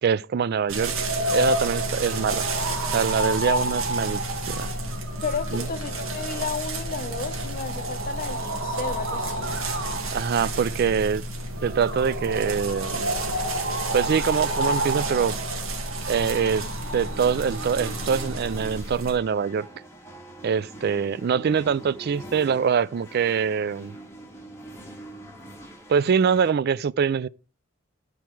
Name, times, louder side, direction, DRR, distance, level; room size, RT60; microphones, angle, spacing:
voice 1, 0.0-0.9 1.3-2.5 2.9-4.7 5.5-5.7 10.1-11.2 11.6-13.1 13.9-15.4 16.1-16.6 16.9-19.7 20.4-23.9 25.9-27.3, right 6 dB, 50° right, 0.3 m, -24 dB
sound 1, 0.7-19.2, right 1 dB, 85° right, 1.7 m, -29 dB
voice 2, 5.2-9.6, left 5 dB, 45° left, 0.7 m, -33 dB
sound 2, 16.3-26.5, right 1 dB, 15° left, 1.8 m, -44 dB
12.0 x 4.7 x 4.5 m
head